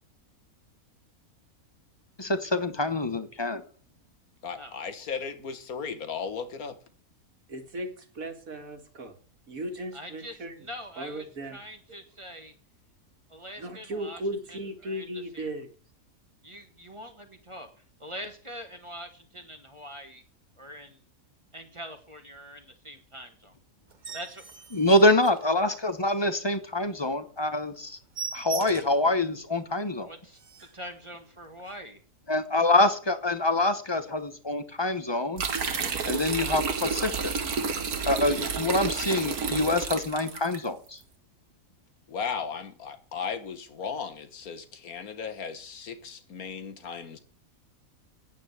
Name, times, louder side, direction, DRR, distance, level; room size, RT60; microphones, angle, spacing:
voice 1, 2.2-3.6 24.7-28.0 28.3-30.1 32.3-35.4 36.0-37.3 38.0-41.0, left 2 dB, 20° left, 0.8 m, -25 dB
voice 2, 4.4-6.8 42.1-47.2, left 6 dB, 75° left, 1.7 m, -36 dB
voice 3, 7.5-9.1 9.5-10.7 11.0-11.6 13.6-15.7, right 1 dB, 70° right, 2.4 m, -36 dB
voice 4, 9.9-12.5 13.3-14.2 14.5-15.5 16.4-20.2 20.6-21.0 21.5-23.5 24.1-24.7 29.8-32.0, equal, 20° right, 1.6 m, -44 dB
sound 1, 23.9-26.0 26.5-26.6 27.0-27.1 27.4-27.5 27.8-29.1 29.6-29.7 30.0-30.1 30.3-30.8 31.6-31.8, right 5 dB, 35° right, 0.9 m, -40 dB
sound 2, 35.4-40.6, right 5 dB, 85° right, 2.0 m, -30 dB
9.5 x 8.5 x 8.1 m
omnidirectional pair, 1.5 m